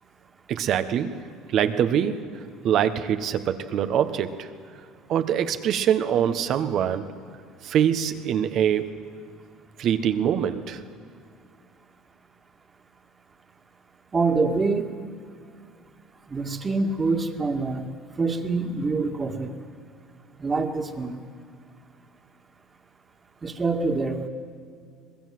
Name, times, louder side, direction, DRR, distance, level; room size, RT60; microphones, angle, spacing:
voice 1, 0.5-1.2 1.5-2.2 2.6-4.5 5.1-7.1 7.6-8.9 9.8-10.8, right 9 dB, 55° right, 10 dB, 1.4 m, -24 dB
voice 2, 14.1-14.9 16.3-17.8 18.2-19.5 20.4-21.2 23.4-24.3, right 3 dB, 25° right, 5 dB, 2.3 m, -25 dB
23.5 x 21.0 x 7.9 m, 2.3 s
supercardioid pair, 85°, 0 cm